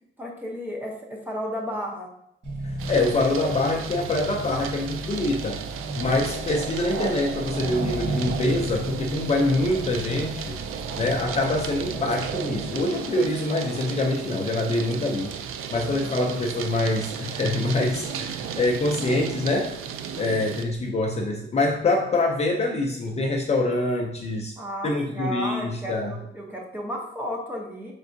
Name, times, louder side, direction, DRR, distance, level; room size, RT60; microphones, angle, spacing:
voice 1, 0.2-2.1 6.0-6.2 15.7-16.2 24.6-27.9, equal, 10° right, -1 dB, 0.7 m, -33 dB
Accelerating revving vroom, 2.4-12.8, right 1 dB, 55° right, 1.6 m, -35 dB
voice 2, 2.6-5.6 6.0-10.6 11.0-15.3 15.7-19.7 20.2-24.5 24.8-26.2, left 2 dB, 30° left, 0 dB, 0.5 m, -25 dB
sound 1, 2.8-20.6, right 8 dB, 90° right, 0.4 m, -34 dB
5.2 x 3.5 x 2.6 m, 0.76 s
wide cardioid pair, 175°, 21 cm